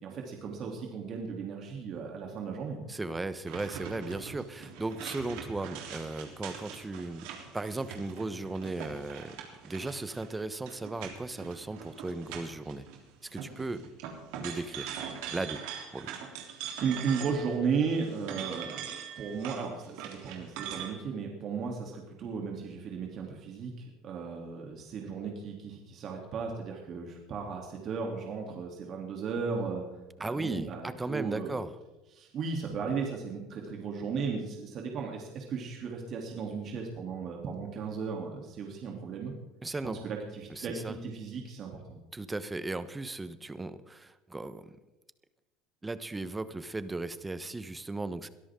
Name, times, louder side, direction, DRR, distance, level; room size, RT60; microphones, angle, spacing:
voice 1, 0.0-2.8 16.3-18.9 19.2-29.8 30.2-31.6 32.1-39.3 39.8-42.0, right 5 dB, 50° right, 0 dB, 3.2 m, -35 dB
voice 2, 2.9-7.2 7.5-9.4 9.6-12.9 13.3-13.8 14.4-14.9 15.3-15.6 15.9-16.1 30.2-31.7 39.6-40.0 40.5-40.9 42.1-44.6 45.8-48.3, right 2 dB, 15° right, 13 dB, 1.1 m, -36 dB
sound 1, 3.4-13.0 13.3-17.6 17.9-20.9, right 8 dB, 75° right, 3.6 m, -42 dB
22.0 x 13.5 x 3.8 m, 1.1 s
supercardioid pair, 90°, 0 cm